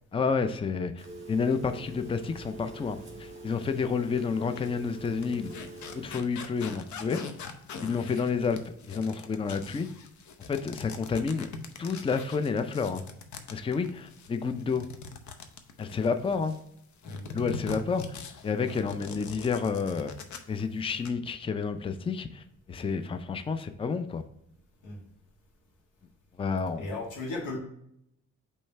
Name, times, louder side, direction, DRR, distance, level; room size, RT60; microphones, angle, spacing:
voice 1, 0.1-5.5 5.9-7.2 7.8-8.6 8.8-9.9 10.5-11.5 11.8-13.0 13.5-14.8 15.8-16.6 17.3-20.1 20.5-24.2 26.4-26.9, left 5 dB, 20° left, 9 dB, 0.4 m, -30 dB
Telephone, 1.0-6.2, right 2 dB, 20° right, 1.8 m, -45 dB
sound 1, 3.7-3.8 4.4-16.6 17.0-20.6 20.9-21.1, left 5 dB, 70° left, 0.8 m, -43 dB
voice 2, 26.8-27.6, left 2 dB, 90° left, 0 dB, 1.6 m, -36 dB
5.3 x 3.2 x 5.5 m, 0.77 s
cardioid pair, 90°, 30 cm